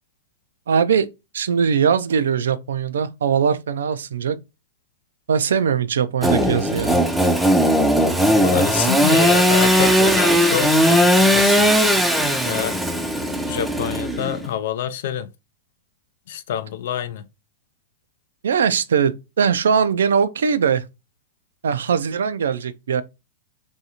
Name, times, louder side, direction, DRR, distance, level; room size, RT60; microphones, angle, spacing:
voice 1, 0.7-1.1 1.3-4.4 5.3-7.0 18.4-20.8 21.6-23.0, right 7 dB, 85° right, 0.3 m, -20 dB
Engine / Sawing, 6.2-14.5, equal, 5° right, 0.4 m, -18 dB
voice 2, 8.3-11.9 12.5-12.8 13.5-15.3 16.3-17.2, left 10 dB, 70° left, 0.4 m, -27 dB
2.6 x 2.3 x 2.8 m
hypercardioid pair, 120°, 0 cm